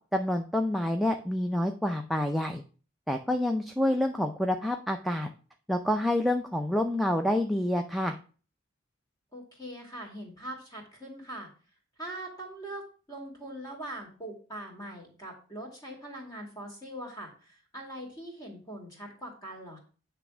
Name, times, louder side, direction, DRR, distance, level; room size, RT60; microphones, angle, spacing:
voice 1, 0.1-2.6 3.1-5.3 5.7-8.1, left 1 dB, ahead, 3 dB, 0.4 m, -28 dB
voice 2, 9.3-11.5 12.0-19.8, right 1 dB, 20° left, 0 dB, 2.4 m, -42 dB
9.1 x 3.4 x 6.0 m, 0.39 s
head